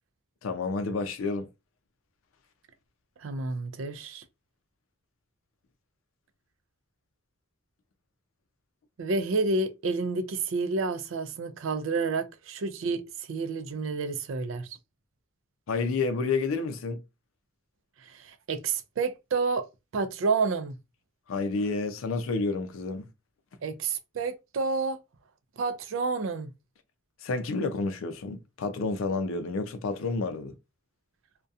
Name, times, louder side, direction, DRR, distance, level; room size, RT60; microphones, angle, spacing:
voice 1, 0.4-1.5 15.7-17.0 21.3-23.1 27.2-30.5, left 3 dB, 80° left, 0.4 m, -30 dB
voice 2, 3.2-4.2 9.0-14.8 18.0-19.7 19.9-20.8 23.6-25.0 25.6-26.5, right 4 dB, 70° right, 0.4 m, -29 dB
2.3 x 2.2 x 2.6 m
head